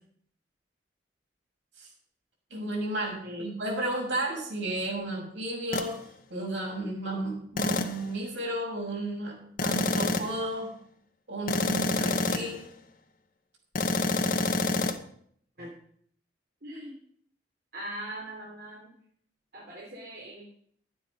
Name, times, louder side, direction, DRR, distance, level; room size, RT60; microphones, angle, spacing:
voice 1, 2.5-6.0 6.3-9.3 9.6-10.7 11.3-12.7, right 1 dB, 80° right, -2 dB, 5.9 m, -33 dB
sound 1, 5.7-5.9 7.6-8.0 9.6-10.4 11.5-12.6 13.8-15.0, left 2 dB, 50° left, 1.0 m, -27 dB
voice 2, 16.6-16.9 17.7-18.9 19.5-20.4, right 1 dB, 60° right, -4 dB, 3.3 m, -40 dB
12.5 x 9.4 x 5.4 m, 0.63 s
head